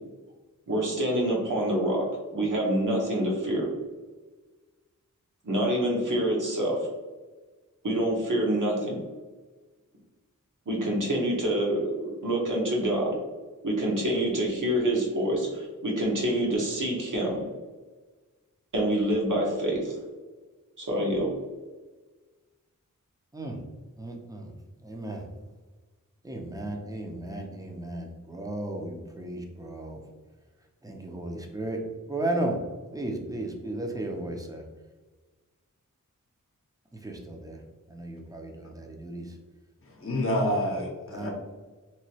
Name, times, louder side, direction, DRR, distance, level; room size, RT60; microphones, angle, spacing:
voice 1, 0.7-2.0 2.3-3.7 5.4-6.9 7.8-9.0 10.7-13.1 13.6-17.4 18.7-20.0 20.8-21.3, right 1 dB, 65° right, -3 dB, 1.1 m, -26 dB
voice 2, 24.0-24.5 24.8-25.3 26.2-30.0 30.8-31.8 32.1-32.6 32.9-34.6 36.9-37.6 37.9-39.3 41.1-41.3, right 1 dB, 10° right, 1 dB, 0.6 m, -34 dB
voice 3, 39.8-41.3, left 1 dB, 40° left, 0 dB, 0.8 m, -28 dB
3.0 x 2.8 x 2.8 m, 1.3 s
wide cardioid pair, 50°, 33 cm